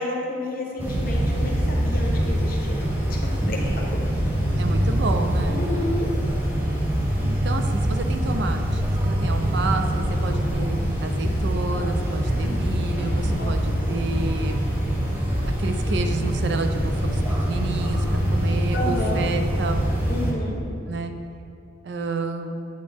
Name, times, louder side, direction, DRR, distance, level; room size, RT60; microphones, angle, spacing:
voice 1, 0.0-3.6 3.9-4.0 5.5-6.1 12.3-12.8 13.2-13.5 13.9-14.2 18.7-19.2 20.1-20.6, left 1 dB, 50° left, -1 dB, 0.9 m, -31 dB
sound 1, 0.8-20.3, equal, 10° right, 0.9 m, -24 dB
voice 2, 4.6-5.6 7.2-14.6 15.4-19.8 20.9-21.1 21.8-22.6, right 3 dB, 65° right, 6 dB, 0.4 m, -30 dB
7.9 x 4.2 x 3.4 m, 2.7 s
head